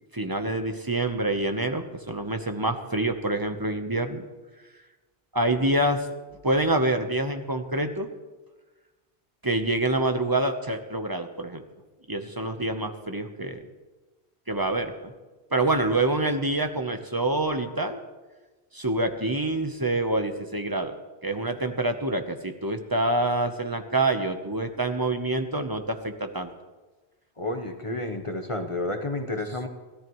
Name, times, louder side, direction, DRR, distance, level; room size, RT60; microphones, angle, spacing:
voice 1, 0.1-4.3 5.3-6.1 6.4-8.1 9.4-11.6 12.1-13.6 14.5-15.1 15.5-18.0 18.7-21.0 21.2-26.5, right 2 dB, 20° right, 6 dB, 0.9 m, -26 dB
voice 2, 27.4-29.7, left 2 dB, 30° left, 5 dB, 1.0 m, -30 dB
28.0 x 14.0 x 3.2 m, 1.3 s
omnidirectional pair, 1.1 m